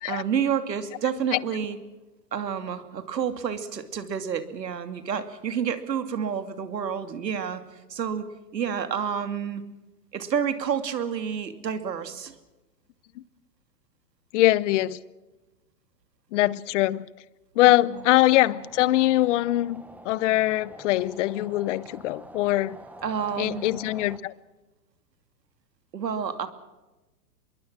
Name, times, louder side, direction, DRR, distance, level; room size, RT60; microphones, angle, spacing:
voice 1, 0.0-1.8 2.3-7.6 7.9-9.6 10.1-12.4 17.9-18.0 23.0-23.7 25.9-26.5, right 7 dB, 85° right, 2.7 m, -29 dB
voice 2, 14.3-15.0 16.3-17.0 17.6-22.8 23.4-24.3, left 16 dB, 50° left, 1.0 m, -22 dB
sound 1, 17.9-24.2, right 1 dB, 5° right, 1.3 m, -47 dB
25.5 x 22.5 x 6.2 m
hypercardioid pair, 130°, 48 cm